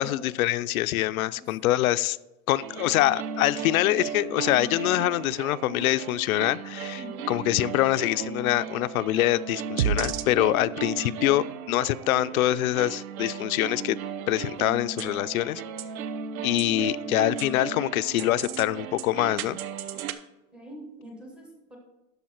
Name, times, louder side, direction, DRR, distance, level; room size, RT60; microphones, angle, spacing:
voice 1, 0.0-2.2 2.5-7.0 7.3-14.0 14.3-15.6 16.4-19.6, left 15 dB, 90° left, 15 dB, 0.5 m, -25 dB
voice 2, 1.3-1.7 6.9-7.3 16.6-17.2 20.5-21.8, equal, 5° right, 0 dB, 0.4 m, -43 dB
sound 1, 2.6-20.1, right 7 dB, 90° right, 0.8 m, -35 dB
12.5 x 4.6 x 4.4 m, 1.0 s
supercardioid pair, 170°, 41 cm